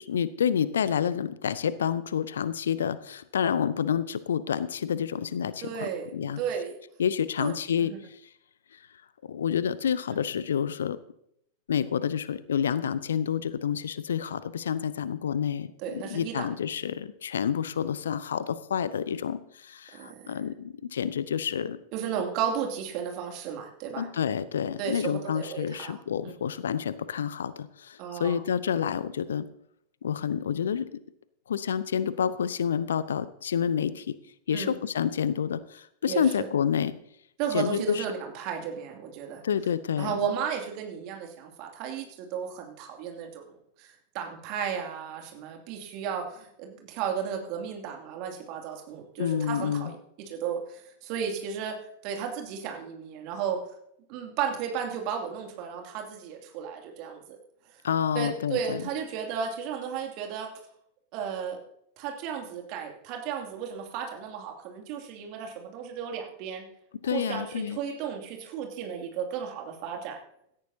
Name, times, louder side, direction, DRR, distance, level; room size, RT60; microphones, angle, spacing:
voice 1, 0.0-6.4 7.0-8.2 9.2-11.0 11.7-21.8 24.0-29.5 30.0-31.0 31.5-34.2 34.5-36.9 37.5-38.0 39.4-40.2 49.2-49.9 57.8-58.8 67.0-67.8, left 8 dB, 65° left, 16 dB, 0.7 m, -29 dB
voice 2, 5.6-6.7 7.4-7.5 7.8-8.0 15.8-16.4 19.9-20.2 21.9-24.1 24.8-26.0 26.2-26.3 28.0-28.4 34.5-34.8 36.1-36.5 37.4-39.4 40.0-43.5 43.8-50.0 50.3-51.8 52.0-53.6 54.1-57.4 58.1-60.5 61.1-61.6 62.0-66.6 67.1-70.2, right 7 dB, 45° right, 2 dB, 2.6 m, -34 dB
17.0 x 13.5 x 2.8 m, 0.75 s
figure-of-eight pair, 90°, 0 cm